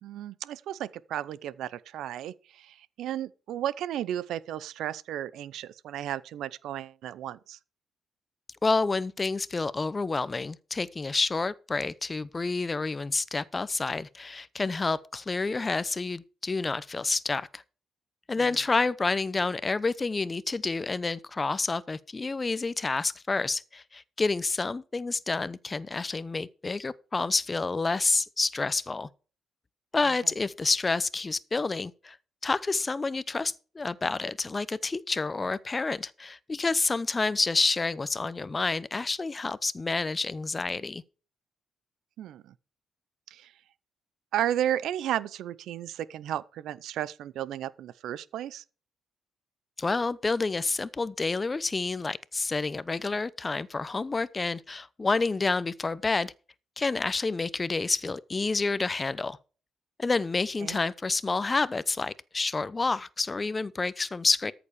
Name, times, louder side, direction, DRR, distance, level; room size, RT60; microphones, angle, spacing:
voice 1, 0.0-7.6 18.4-18.5 30.0-30.3 42.2-42.5 43.3-43.5 44.3-48.6 60.6-60.8, right 11 dB, 80° right, 0.6 m, -34 dB
voice 2, 8.6-17.6 18.3-29.1 29.9-32.2 32.4-41.0 49.8-56.3 56.8-59.4 60.0-64.5, left 3 dB, 25° left, 0.7 m, -29 dB
13.5 x 6.9 x 4.9 m
cardioid pair, 90°, 0 cm